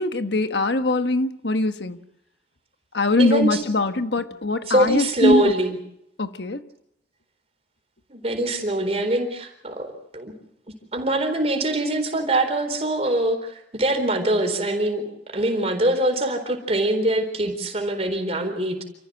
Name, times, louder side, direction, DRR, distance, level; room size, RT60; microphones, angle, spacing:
voice 1, 0.0-2.0 2.9-5.5 6.2-6.6, left 2 dB, 75° left, 1.3 m, -22 dB
voice 2, 3.2-3.6 4.6-5.8 8.1-10.3 10.9-18.8, right 1 dB, 35° right, 4.2 m, -23 dB
29.0 x 14.5 x 7.8 m
head